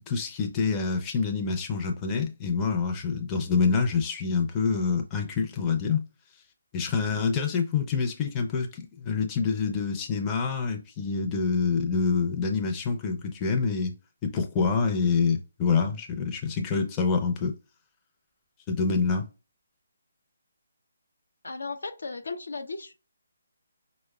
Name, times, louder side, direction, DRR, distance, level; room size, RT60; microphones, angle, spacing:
voice 1, 0.1-6.1 6.7-13.9 14.2-17.5 18.7-19.3, left 5 dB, 20° left, 0.5 m, -26 dB
voice 2, 21.4-22.9, left 3 dB, 75° left, 0.5 m, -35 dB
4.5 x 2.0 x 2.2 m
figure-of-eight pair, 150°, 0 cm